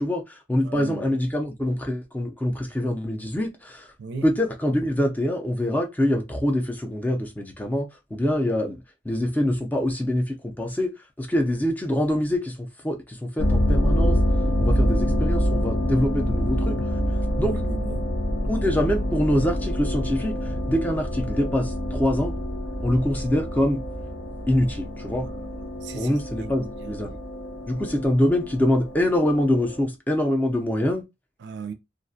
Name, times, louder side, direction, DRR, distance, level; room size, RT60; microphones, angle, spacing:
voice 1, 0.0-3.9 4.2-8.8 9.0-10.9 11.2-14.2 14.6-16.8 17.4-17.6 18.5-22.3 22.8-23.8 24.5-25.3 25.9-27.2 27.7-31.0, left 1 dB, 10° left, 0.4 m, -25 dB
voice 2, 0.6-1.1 4.0-4.2 17.4-18.1 25.6-26.2 26.4-27.0 31.4-31.7, right 5 dB, 70° right, 0.4 m, -37 dB
sound 1, 13.4-29.8, equal, 85° left, 0.7 m, -26 dB
2.4 x 2.2 x 2.6 m
head